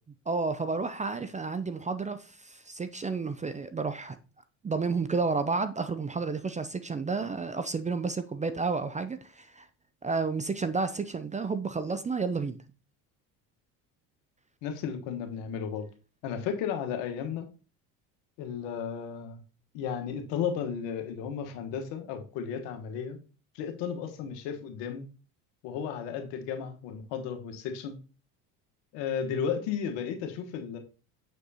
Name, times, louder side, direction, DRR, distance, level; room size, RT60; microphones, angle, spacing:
voice 1, 0.3-4.2 4.6-9.7 10.0-12.6, right 4 dB, 15° right, 0.5 m, -31 dB
voice 2, 14.6-15.9 16.2-17.5 18.4-19.4 19.7-23.2 23.5-25.1 25.6-28.0 28.9-30.8, left 7 dB, 70° left, 1.3 m, -34 dB
6.5 x 6.5 x 2.8 m
hypercardioid pair, 75°, 44 cm